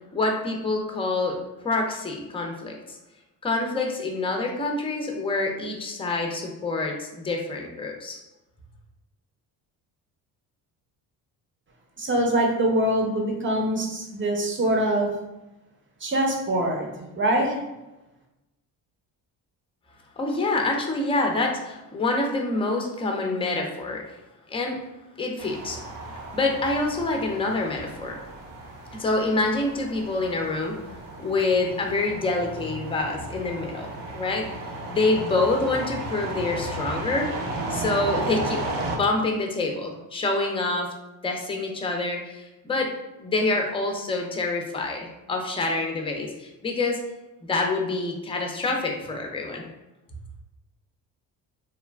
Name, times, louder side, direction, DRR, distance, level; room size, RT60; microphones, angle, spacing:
voice 1, 0.1-1.4 1.6-3.0 3.4-8.2 20.2-24.0 24.5-24.8 25.2-25.8 26.3-28.2 28.9-30.8 31.2-34.5 34.9-37.3 37.7-40.9 41.2-42.9 43.2-47.0 47.4-49.6, left 2 dB, 15° left, 2 dB, 0.5 m, -26 dB
voice 2, 12.0-15.1 16.0-16.9 17.1-17.6, right 1 dB, 30° right, 0 dB, 0.7 m, -23 dB
sound 1, 25.4-39.0, right 2 dB, 55° right, 0.7 m, -34 dB
3.0 x 2.3 x 2.2 m, 0.99 s
supercardioid pair, 75°, 42 cm